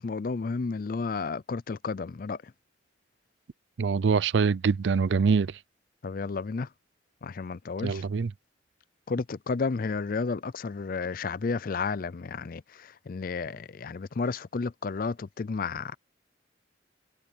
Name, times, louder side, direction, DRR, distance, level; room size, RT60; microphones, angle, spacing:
voice 1, 0.0-2.5 6.0-6.7 7.2-8.0 9.1-15.9, left 4 dB, 50° left, 0.4 m, -32 dB
voice 2, 3.8-5.5 7.8-8.3, right 5 dB, 75° right, 0.4 m, -24 dB
head